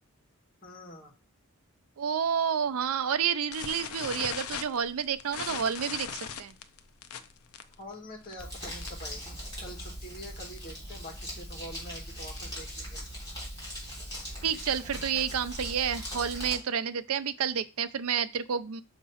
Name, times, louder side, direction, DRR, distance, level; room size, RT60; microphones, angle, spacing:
voice 1, 0.6-1.1 7.8-13.0 16.1-16.2, left 1 dB, 45° left, 1 dB, 1.6 m, -45 dB
voice 2, 2.0-6.5 14.4-18.8, right 7 dB, 85° right, 13 dB, 0.5 m, -30 dB
sound 1, 3.5-9.1 9.4-9.7 10.0-10.1 10.4-10.6 11.1-12.7, left 7 dB, 90° left, 0.6 m, -39 dB
Crumpling crinkling, 8.4-16.5, equal, 15° left, 3.6 m, -40 dB
6.2 x 2.9 x 5.6 m, 0.32 s
head